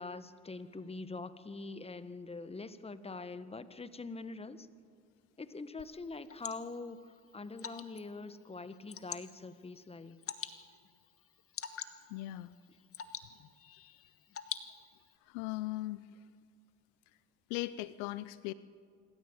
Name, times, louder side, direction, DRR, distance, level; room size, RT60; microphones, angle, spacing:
voice 1, 0.0-4.7 5.4-10.2, left 3 dB, 15° left, 13 dB, 1.4 m, -44 dB
Water / Drip, 5.8-15.2, left 7 dB, 40° left, 1.7 m, -48 dB
voice 2, 12.1-12.5 15.3-16.2 17.5-18.5, left 17 dB, 70° left, 17 dB, 0.6 m, -38 dB
26.5 x 14.0 x 7.9 m, 2.1 s
hypercardioid pair, 70°, 36 cm